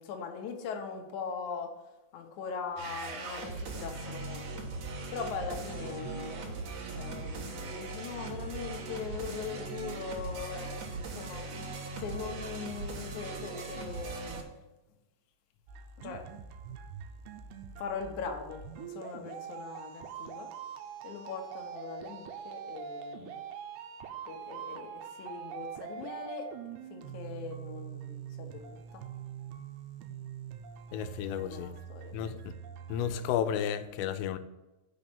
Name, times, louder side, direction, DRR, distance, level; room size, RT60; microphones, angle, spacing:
voice 1, 0.0-1.7 2.1-4.6 5.1-6.6 6.9-14.3 16.0-16.3 17.8-20.5 21.0-23.3 24.3-26.5 26.9-29.0 31.2-32.2, left 6 dB, 75° left, 1.8 m, -41 dB
sound 1, 2.8-14.4, right 3 dB, 60° right, 1.8 m, -39 dB
sound 2, 15.7-33.2, right 8 dB, 85° right, 2.7 m, -44 dB
voice 2, 30.9-31.7 32.1-32.6 32.9-34.4, left 9 dB, 90° left, 2.8 m, -32 dB
6.4 x 5.3 x 7.1 m
omnidirectional pair, 4.8 m